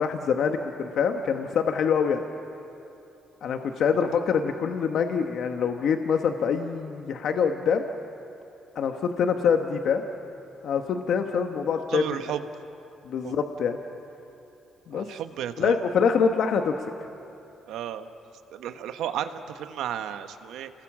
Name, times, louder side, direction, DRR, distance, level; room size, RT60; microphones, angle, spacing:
voice 1, 0.0-2.2 3.4-7.8 8.7-10.0 10.6-12.2 13.0-13.8 14.9-15.1 15.6-16.9, left 6 dB, 70° left, 5 dB, 1.2 m, -25 dB
voice 2, 11.9-12.4 13.2-13.3 14.9-15.7 17.7-18.1 18.5-20.7, right 10 dB, 85° right, 9 dB, 1.1 m, -33 dB
29.5 x 21.0 x 7.4 m, 2.8 s
cardioid pair, 90°, 0 cm